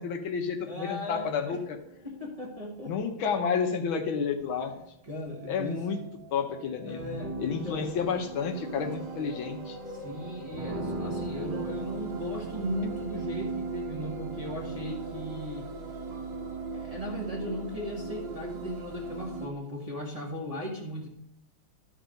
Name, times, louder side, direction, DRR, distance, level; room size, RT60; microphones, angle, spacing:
voice 1, 0.0-1.8 2.8-4.7 5.5-6.0 6.3-7.1 7.4-9.8, left 6 dB, 75° left, 4 dB, 1.7 m, -30 dB
voice 2, 0.6-1.6 2.0-3.3 5.0-6.1 6.8-7.9 8.9-9.0 9.9-15.7 16.7-21.1, equal, 20° right, -2 dB, 1.2 m, -37 dB
sound 1, 1.2-19.5, right 3 dB, 50° right, 1.9 m, -39 dB
13.0 x 4.6 x 5.2 m, 0.80 s
omnidirectional pair, 2.3 m